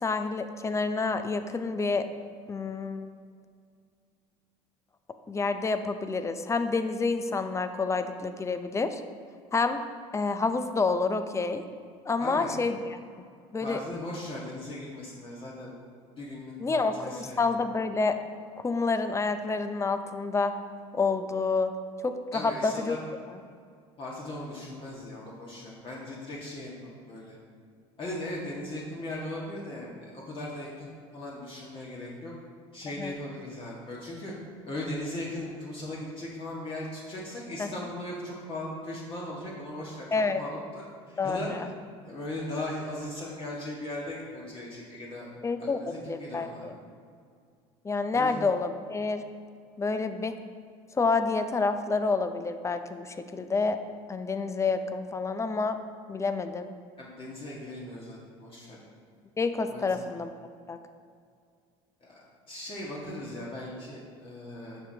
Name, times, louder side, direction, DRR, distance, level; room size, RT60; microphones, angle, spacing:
voice 1, 0.0-2.1 2.5-3.1 5.3-9.0 9.5-9.8 10.1-11.6 12.1-12.8 13.5-13.8 16.6-18.2 18.6-20.5 20.9-21.7 22.0-23.0 33.0-33.1 37.6-37.7 40.1-40.4 41.2-41.7 45.4-46.8 47.8-49.2 49.8-50.4 51.0-53.8 54.1-55.8 56.1-56.7 59.4-60.3 60.7-60.8, left 4 dB, 20° left, 9 dB, 0.6 m, -28 dB
voice 2, 12.2-12.5 13.6-15.7 16.2-17.4 22.3-23.0 24.0-27.4 28.0-32.3 32.7-34.3 34.7-41.5 42.0-45.3 45.6-46.7 48.1-48.4 57.0-58.8 59.7-60.1 62.0-64.8, left 1 dB, 35° left, -5 dB, 1.7 m, -38 dB
10.0 x 6.3 x 2.9 m, 2.2 s
supercardioid pair, 90°, 15 cm